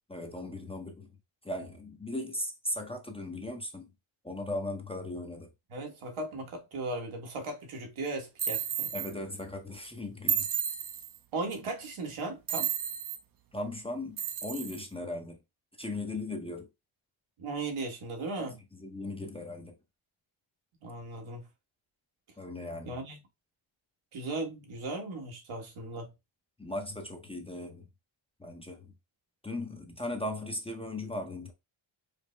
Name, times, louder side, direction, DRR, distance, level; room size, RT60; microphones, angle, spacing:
voice 1, 0.1-1.1 1.4-3.9 4.2-5.5 8.9-10.5 13.5-15.4 15.8-16.7 18.4-19.7 22.4-22.9 26.6-27.8 28.4-28.9 29.4-31.5, left 1 dB, 10° left, 0.6 m, -38 dB
voice 2, 5.7-8.9 11.3-12.7 17.4-18.6 20.8-21.4 22.8-23.2 24.1-26.1, right 2 dB, 80° right, 1.4 m, -37 dB
sound 1, 8.4-9.1 10.3-11.2 12.5-13.2 14.2-14.8, right 8 dB, 45° right, 0.6 m, -32 dB
5.0 x 2.0 x 3.1 m
wide cardioid pair, 130°, 48 cm